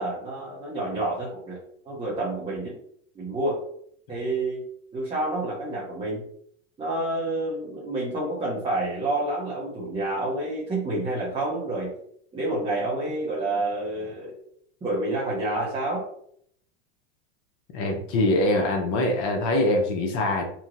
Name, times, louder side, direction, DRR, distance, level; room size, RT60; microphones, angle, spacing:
voice 1, 0.0-1.6 1.8-2.8 3.1-3.6 4.1-4.7 4.9-6.3 6.8-11.9 12.3-14.4 14.8-16.0, right 2 dB, 15° right, -6 dB, 0.9 m, -28 dB
voice 2, 17.7-20.4, left 1 dB, 50° left, 2 dB, 0.8 m, -23 dB
3.0 x 2.6 x 2.6 m, 0.67 s
hypercardioid pair, 120°, 39 cm